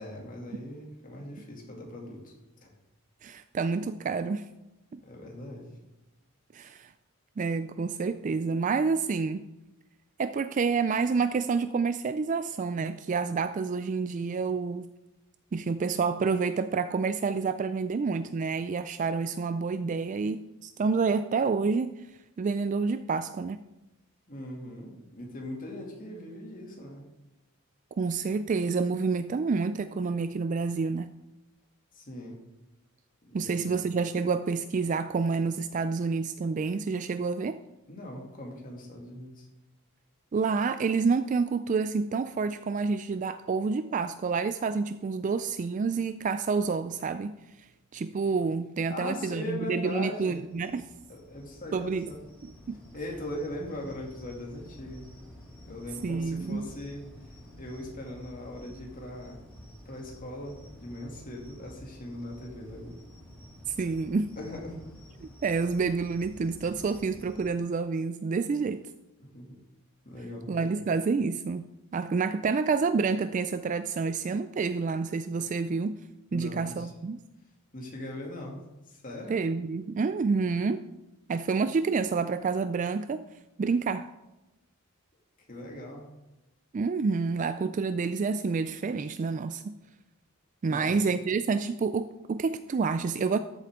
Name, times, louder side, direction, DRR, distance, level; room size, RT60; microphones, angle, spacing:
voice 1, 0.0-2.7 5.0-5.7 24.3-27.0 31.9-32.4 33.2-33.8 37.9-39.5 48.9-50.4 51.1-52.2 52.9-55.1 55.7-57.1 57.6-59.4 59.8-63.0 64.4-64.8 69.2-69.6 70.0-70.5 76.3-76.9 77.7-78.6 78.9-79.4 85.5-86.1 90.6-91.0, left 1 dB, 40° left, -1 dB, 2.5 m, -40 dB
voice 2, 3.2-4.4 4.9-5.0 6.5-6.9 7.4-9.4 10.2-14.9 15.5-22.1 22.4-23.6 28.0-31.1 33.3-37.6 40.3-47.4 47.9-50.9 51.7-52.1 52.4-52.8 56.0-56.7 63.7-64.3 65.4-68.8 70.5-76.0 76.3-77.2 79.3-80.9 81.3-83.3 83.6-84.1 86.7-89.8 90.6-93.4, right 4 dB, 35° right, 12 dB, 0.3 m, -28 dB
sound 1, 50.3-67.5, equal, 5° left, 3.1 m, -50 dB
13.5 x 8.1 x 3.7 m, 0.99 s
head